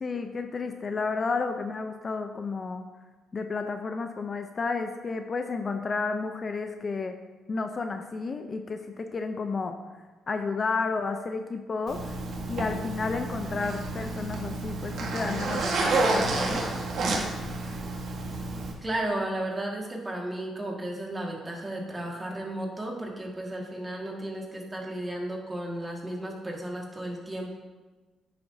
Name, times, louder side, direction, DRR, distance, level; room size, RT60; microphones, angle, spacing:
voice 1, 0.0-2.8 3.3-7.2 7.5-9.8 10.3-12.1 12.5-16.6, left 4 dB, 40° left, 6 dB, 0.5 m, -31 dB
Zipper (clothing), 11.9-18.7, right 2 dB, 65° right, 1.4 m, -30 dB
voice 2, 18.8-27.5, right 1 dB, 20° right, -1 dB, 1.7 m, -34 dB
9.4 x 6.7 x 2.7 m, 1.2 s
cardioid pair, 90°, 0 cm